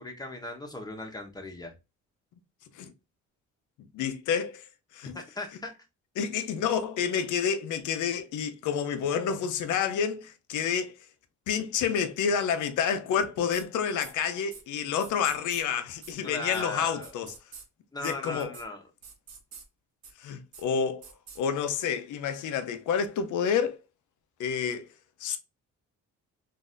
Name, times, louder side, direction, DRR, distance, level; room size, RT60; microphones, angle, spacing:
voice 1, 0.0-1.7 5.1-5.7 16.2-17.1 17.9-18.9, left 2 dB, 15° left, 1.1 m, -37 dB
voice 2, 3.9-4.7 4.9-5.2 6.2-10.9 11.5-17.3 18.0-18.5 20.2-21.0 21.4-23.8 24.4-24.9 25.2-25.4, left 7 dB, 80° left, 0.7 m, -29 dB
sound 1, 13.5-13.6 14.0-14.1 14.5-14.6 15.0-15.6 16.0-16.1 16.5-16.6 17.0-17.6 18.0-18.1 18.4-18.6 19.0-19.6 20.0-20.1 20.5-20.6 21.0-21.4, right 5 dB, 60° right, 1.0 m, -46 dB
3.9 x 2.8 x 2.5 m
cardioid pair, 90°, 30 cm